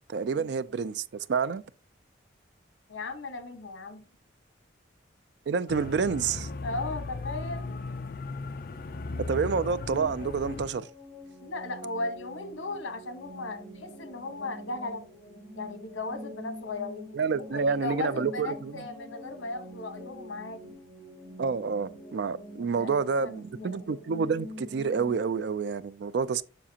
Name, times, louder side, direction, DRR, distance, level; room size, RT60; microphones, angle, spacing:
voice 1, 0.1-1.6 5.5-6.5 9.3-10.9 17.1-18.8 21.4-26.4, right 5 dB, 60° right, 0.3 m, -28 dB
voice 2, 2.9-4.0 6.6-7.7 11.4-15.0 15.6-17.1 17.4-20.7 22.8-23.8, left 2 dB, 85° left, 1.1 m, -37 dB
sound 1, 5.7-10.7, left 3 dB, 50° left, 0.4 m, -37 dB
sound 2, 9.1-25.4, left 1 dB, 25° left, 3.8 m, -45 dB
7.2 x 5.8 x 2.8 m
head